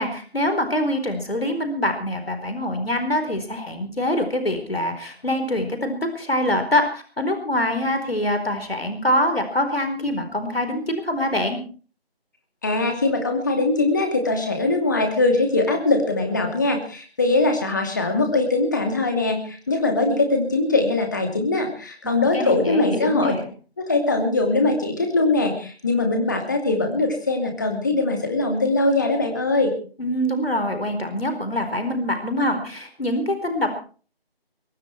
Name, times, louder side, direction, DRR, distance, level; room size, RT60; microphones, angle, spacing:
voice 1, 0.0-11.6 22.0-23.5 30.0-33.7, left 1 dB, 70° left, 7 dB, 4.5 m, -24 dB
voice 2, 12.6-23.3 23.8-29.7, left 2 dB, 20° left, 4 dB, 2.5 m, -21 dB
23.0 x 13.0 x 4.6 m, 0.40 s
figure-of-eight pair, 165°, 31 cm